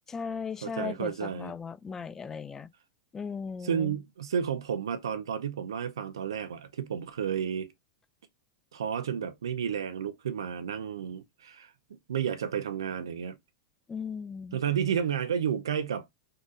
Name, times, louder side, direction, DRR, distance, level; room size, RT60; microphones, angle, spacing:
voice 1, 0.1-2.7 3.1-4.0 13.9-14.6, left 6 dB, 20° left, 0.4 m, -37 dB
voice 2, 0.6-1.5 3.6-7.7 8.7-11.7 12.1-13.4 14.5-16.1, right 8 dB, 85° right, 0.6 m, -31 dB
3.8 x 2.5 x 4.0 m
hypercardioid pair, 105°, 2 cm